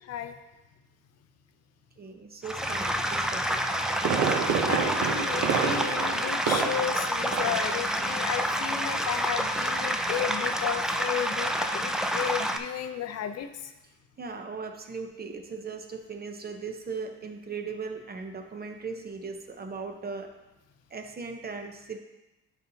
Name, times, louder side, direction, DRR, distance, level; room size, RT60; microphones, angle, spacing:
voice 1, 0.0-0.3 4.2-13.7, left 9 dB, 55° left, 8 dB, 0.5 m, -34 dB
voice 2, 2.0-3.6 14.2-20.3 20.9-22.0, right 4 dB, 30° right, 5 dB, 0.8 m, -38 dB
sound 1, 2.4-12.6, equal, ahead, 0.4 m, -28 dB
Fireworks, 3.6-7.0 7.3-7.7 8.0-8.1, right 6 dB, 70° right, 0.7 m, -28 dB
10.5 x 4.1 x 2.7 m, 1.0 s
cardioid pair, 90°, 30 cm